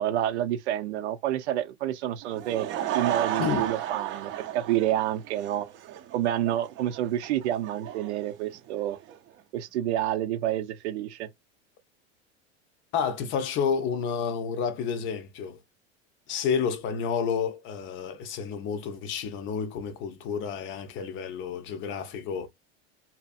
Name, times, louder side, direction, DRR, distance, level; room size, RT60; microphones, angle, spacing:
voice 1, 0.0-2.7 2.9-5.7 6.1-9.0 9.5-11.3, right 12 dB, 85° right, 0.7 m, -28 dB
Laughter / Crowd, 2.2-9.2, right 11 dB, 35° right, 0.5 m, -34 dB
voice 2, 3.4-3.7 12.9-15.6 16.3-22.5, left 6 dB, 35° left, 0.5 m, -30 dB
2.7 x 2.5 x 2.4 m
supercardioid pair, 125°, 33 cm